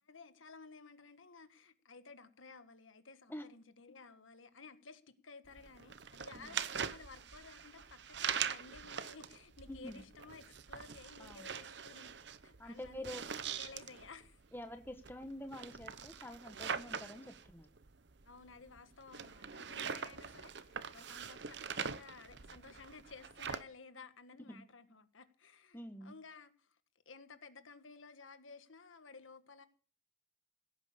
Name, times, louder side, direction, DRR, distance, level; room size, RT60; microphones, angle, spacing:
voice 1, 0.1-12.1 12.4-14.4 18.2-26.8 27.0-29.7, left 4 dB, 90° left, 1.6 m, -55 dB
sound 1, 5.5-23.6, right 7 dB, 60° right, 0.8 m, -43 dB
voice 2, 9.7-10.0 11.2-11.5 12.6-13.2 14.5-17.7 24.4-24.6 25.7-26.1, left 1 dB, 10° left, 1.3 m, -47 dB
16.5 x 9.1 x 6.7 m
head